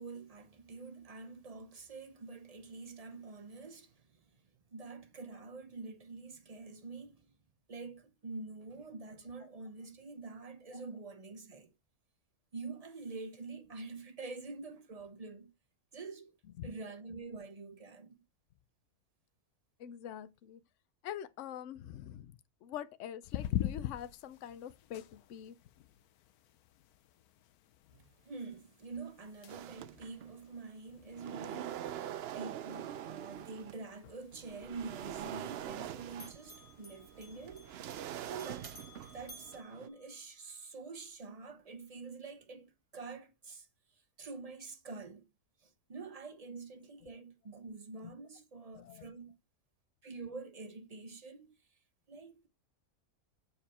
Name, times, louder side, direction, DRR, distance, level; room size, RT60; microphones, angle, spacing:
voice 1, 0.0-4.4 4.7-7.4 7.7-11.7 12.5-15.5 15.9-16.3 16.6-18.2 27.9-37.7 38.3-38.7 39.1-43.7 44.2-45.3 45.6-49.3 50.0-51.6 52.1-52.5, right 4 dB, 35° right, 0.7 m, -46 dB
voice 2, 19.8-20.6 21.0-22.4 22.6-25.6 48.7-49.1, left 10 dB, 60° left, 0.9 m, -45 dB
sound 1, 23.2-39.3, left 12 dB, 90° left, 1.2 m, -46 dB
sound 2, 29.5-30.5 30.9-33.8 34.3-39.9, right 11 dB, 70° right, 0.6 m, -44 dB
Bell, 34.5-35.8 36.1-40.6, left 1 dB, 35° left, 2.1 m, -57 dB
6.9 x 4.9 x 4.3 m
omnidirectional pair, 1.5 m